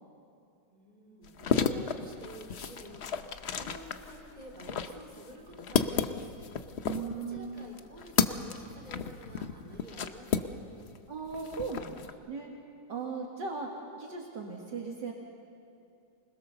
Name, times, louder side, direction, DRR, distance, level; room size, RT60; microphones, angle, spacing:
voice 1, 0.7-6.3 7.1-10.5, right 1 dB, 20° right, -1 dB, 3.7 m, -49 dB
sound 1, 1.2-11.0 11.3-12.1, left 6 dB, 55° left, 0.7 m, -33 dB
voice 2, 6.8-7.6 11.1-12.5 12.9-13.7 14.0-15.1, right 5 dB, 65° right, 0 dB, 2.3 m, -38 dB
25.5 x 21.0 x 6.9 m, 2.5 s
omnidirectional pair, 2.1 m